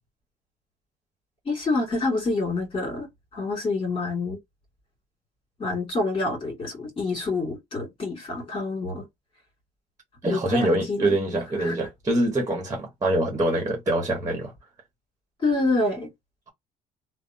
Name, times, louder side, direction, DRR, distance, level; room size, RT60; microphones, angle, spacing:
voice 1, 1.5-3.1 3.3-4.4 5.6-9.0 10.3-11.1 11.6-11.7 15.4-16.1, left 2 dB, 30° left, 2.2 m, -27 dB
voice 2, 10.2-14.5, right 1 dB, 20° right, 1.2 m, -24 dB
3.3 x 2.0 x 2.6 m
cardioid pair, 110°, 17 cm